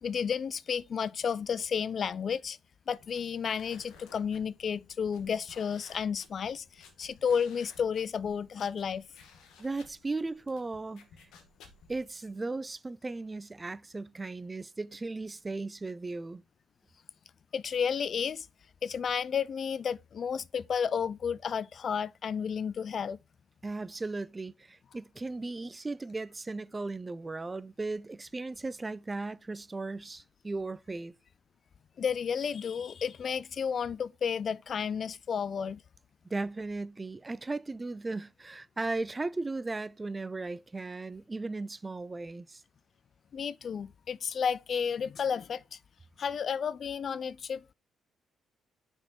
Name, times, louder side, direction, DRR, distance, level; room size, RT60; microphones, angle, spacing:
voice 1, 0.0-2.6 2.9-9.1 17.5-18.5 18.8-23.2 32.0-35.8 43.3-45.8 46.2-47.7, left 7 dB, 50° left, 0.3 m, -32 dB
sound 1, 2.9-12.0, left 5 dB, 85° left, 1.6 m, -57 dB
voice 2, 9.6-11.1 11.9-16.4 23.6-31.1 36.3-42.6, right 3 dB, 20° right, 0.5 m, -36 dB
6.0 x 5.3 x 4.2 m
cardioid pair, 90°, 0 cm